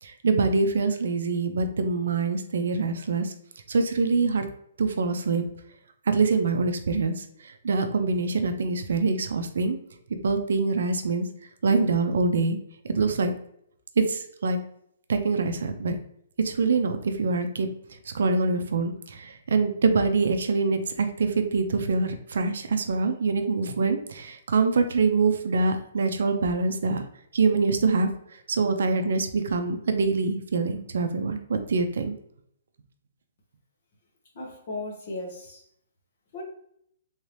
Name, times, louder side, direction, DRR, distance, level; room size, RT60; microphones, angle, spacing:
voice 1, 0.0-3.3 3.7-4.5 4.8-5.4 6.1-9.8 10.2-11.3 11.6-12.6 12.8-13.3 14.0-14.6 15.1-16.0 16.4-17.7 18.1-27.0 27.3-28.1 28.5-32.2, right 4 dB, 65° right, 7 dB, 0.5 m, -25 dB
voice 2, 34.3-35.6 36.3-36.4, left 2 dB, 35° left, -1 dB, 1.0 m, -36 dB
3.5 x 2.7 x 3.2 m, 0.69 s
hypercardioid pair, 180°, 0 cm